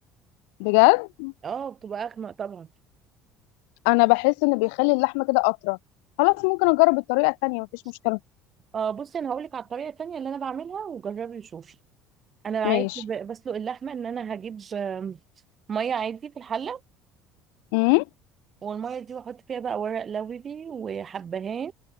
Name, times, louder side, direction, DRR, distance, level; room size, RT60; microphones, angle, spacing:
voice 1, 0.6-1.3 3.9-5.8 6.2-7.7 8.0-8.2 12.6-12.9 17.7-18.0, left 37 dB, 75° left, 0.4 m, -21 dB
voice 2, 1.4-2.7 8.7-11.7 12.4-15.2 15.7-16.8 18.6-21.7, right 7 dB, 40° right, 2.9 m, -32 dB
hypercardioid pair, 70°, 0 cm